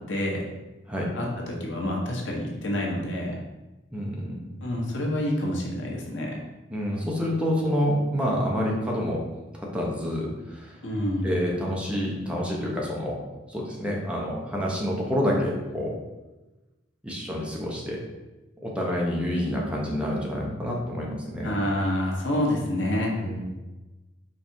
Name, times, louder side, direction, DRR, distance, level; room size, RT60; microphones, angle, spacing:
voice 1, 0.1-0.4 1.1-3.3 4.6-6.3 10.8-11.3 21.4-23.1, left 1 dB, 80° left, -2 dB, 1.5 m, -27 dB
voice 2, 3.9-4.6 6.7-9.2 9.5-10.8 11.2-13.2 13.5-15.9 17.0-18.0 18.6-21.5 23.2-23.4, equal, 5° right, -3 dB, 1.2 m, -28 dB
5.5 x 4.2 x 4.6 m, 1.1 s
head